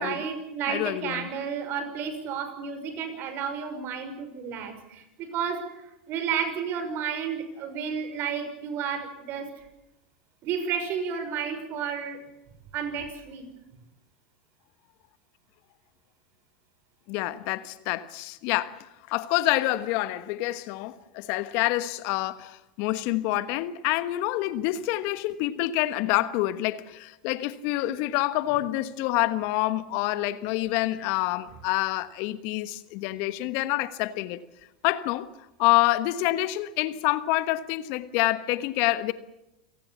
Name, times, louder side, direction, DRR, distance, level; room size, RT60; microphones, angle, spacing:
voice 1, 0.0-9.7 10.4-12.2 12.7-13.4, right 7 dB, 45° right, 5.9 m, -32 dB
voice 2, 0.7-1.3 17.1-34.4 34.8-35.3 35.6-39.1, left 16 dB, 55° left, 1.3 m, -27 dB
28.0 x 19.0 x 7.2 m
hypercardioid pair, 100°, 5 cm